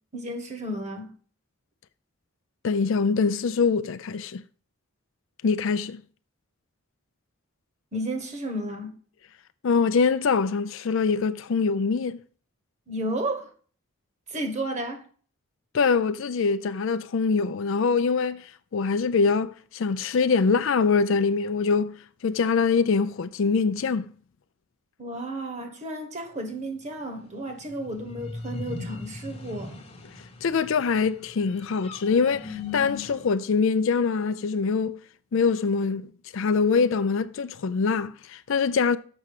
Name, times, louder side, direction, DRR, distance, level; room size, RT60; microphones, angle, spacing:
voice 1, 0.1-1.1 7.9-9.0 12.9-13.5 14.3-15.0 25.0-29.8, right 1 dB, 30° right, 1.3 m, -32 dB
voice 2, 2.6-4.4 5.4-6.0 9.6-12.2 15.7-22.0 22.2-24.1 30.4-35.0 35.3-39.0, left 5 dB, 60° left, 0.4 m, -24 dB
sound 1, 27.5-33.3, left 3 dB, 25° left, 0.9 m, -39 dB
7.0 x 5.6 x 4.8 m
head